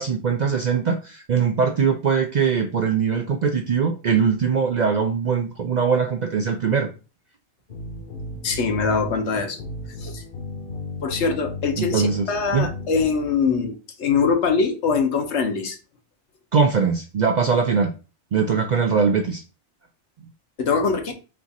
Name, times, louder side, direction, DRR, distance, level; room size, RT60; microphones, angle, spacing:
voice 1, 0.0-6.9 11.8-12.3 12.5-12.7 16.5-17.9 18.3-19.4, right 6 dB, 55° right, 0.5 m, -21 dB
sound 1, 7.7-13.0, left 2 dB, 50° left, 1.0 m, -35 dB
voice 2, 8.4-9.6 10.0-10.2 11.0-15.8 20.6-21.1, left 5 dB, 75° left, 1.1 m, -23 dB
4.4 x 2.5 x 4.0 m
omnidirectional pair, 1.2 m